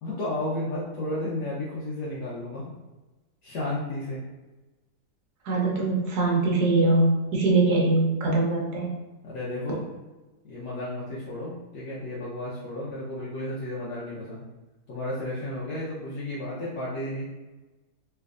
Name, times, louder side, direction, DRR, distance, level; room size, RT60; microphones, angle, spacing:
voice 1, 0.0-2.6 3.4-4.2 9.2-9.8 10.4-14.4 14.9-17.2, left 1 dB, 75° left, -8 dB, 1.3 m, -33 dB
voice 2, 5.4-8.9, right 2 dB, 70° right, -2 dB, 1.2 m, -22 dB
3.4 x 3.0 x 2.4 m, 1.1 s
omnidirectional pair, 1.9 m